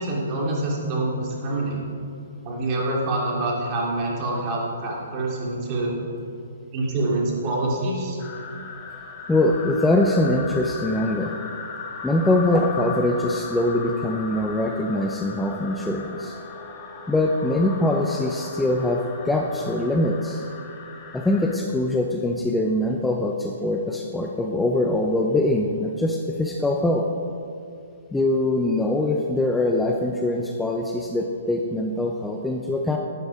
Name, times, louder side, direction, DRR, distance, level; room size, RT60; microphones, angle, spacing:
voice 1, 0.0-1.8 2.4-5.9 6.7-8.2, right 2 dB, 35° right, -2 dB, 3.0 m, -26 dB
sound 1, 8.2-21.6, left 4 dB, 30° left, 1.6 m, -37 dB
voice 2, 9.3-11.3 12.0-16.3 17.1-20.5 21.1-27.0 28.1-33.0, left 1 dB, 5° left, 1 dB, 0.7 m, -23 dB
11.5 x 9.3 x 4.9 m, 2.5 s
figure-of-eight pair, 125°, 0 cm